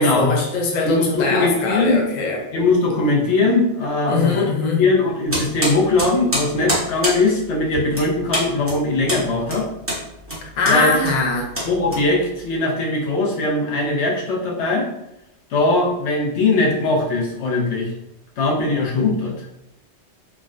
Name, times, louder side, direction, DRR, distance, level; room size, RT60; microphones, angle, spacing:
voice 1, 0.0-2.4 4.1-4.8 10.6-11.5, left 3 dB, 50° left, 0 dB, 0.6 m, -21 dB
voice 2, 0.8-2.0 2.5-4.5 4.8-9.7 10.7-11.0 11.6-14.9 15.5-17.9 18.4-19.5, left 2 dB, 80° left, -1 dB, 0.9 m, -20 dB
sound 1, 5.3-12.5, equal, 15° right, 0.8 m, -27 dB
3.5 x 2.1 x 2.4 m, 0.83 s
omnidirectional pair, 1.2 m